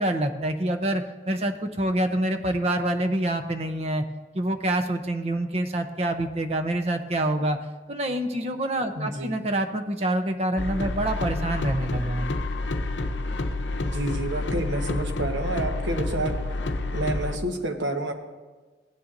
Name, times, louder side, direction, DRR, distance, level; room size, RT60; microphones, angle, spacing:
voice 1, 0.0-4.0 4.3-7.6 7.9-12.4, right 1 dB, 35° right, 6 dB, 0.6 m, -26 dB
voice 2, 8.9-9.4 13.8-16.4 16.8-18.1, right 1 dB, 80° right, 5 dB, 1.1 m, -29 dB
sound 1, 10.6-17.4, left 2 dB, 75° left, 0.7 m, -29 dB
16.5 x 9.9 x 2.6 m, 1.3 s
head